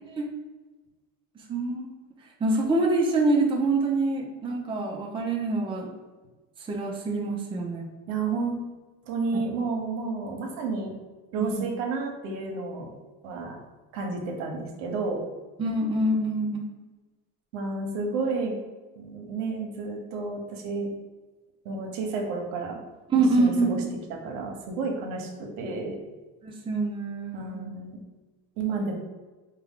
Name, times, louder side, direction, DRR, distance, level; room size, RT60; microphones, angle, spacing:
voice 1, 1.5-1.9 2.4-5.9 6.7-7.8 11.4-11.6 15.6-16.6 23.1-23.7 26.4-27.6, right 2 dB, 15° right, -1 dB, 0.5 m, -25 dB
voice 2, 8.1-8.6 9.1-10.9 11.3-12.9 13.2-13.6 13.9-15.2 17.5-18.5 19.0-20.9 21.6-22.8 23.4-23.8 24.1-26.0 27.3-28.0 28.6-29.0, right 3 dB, 80° right, 2 dB, 1.0 m, -31 dB
4.6 x 2.3 x 3.6 m, 1.2 s
cardioid pair, 130°, 36 cm